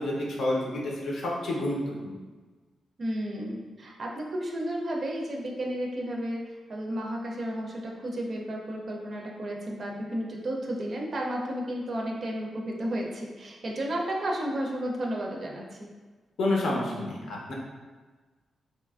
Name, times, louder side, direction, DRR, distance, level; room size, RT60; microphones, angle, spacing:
voice 1, 0.0-2.2 16.4-17.5, left 1 dB, 75° left, -3 dB, 0.6 m, -29 dB
voice 2, 3.0-15.9, right 1 dB, 50° right, -1 dB, 0.4 m, -32 dB
2.8 x 2.3 x 2.3 m, 1.4 s
cardioid pair, 100°, 0 cm